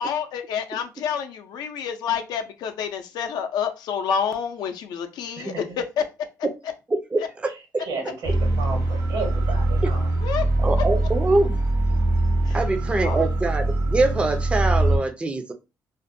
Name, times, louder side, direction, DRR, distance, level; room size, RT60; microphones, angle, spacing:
voice 1, 0.0-6.0 7.2-7.3 10.2-10.5 12.4-12.6 13.0-13.2, left 7 dB, 80° left, 7 dB, 0.4 m, -28 dB
voice 2, 6.9-7.5 9.8-9.9 10.6-11.6 12.5-15.5, right 2 dB, 15° right, 7 dB, 0.4 m, -24 dB
voice 3, 7.9-10.1, right 3 dB, 80° right, 1 dB, 1.2 m, -32 dB
sound 1, 8.2-15.0, right 2 dB, 60° right, 0.9 m, -22 dB
2.5 x 2.1 x 2.5 m, 0.27 s
cardioid pair, 100°, 7 cm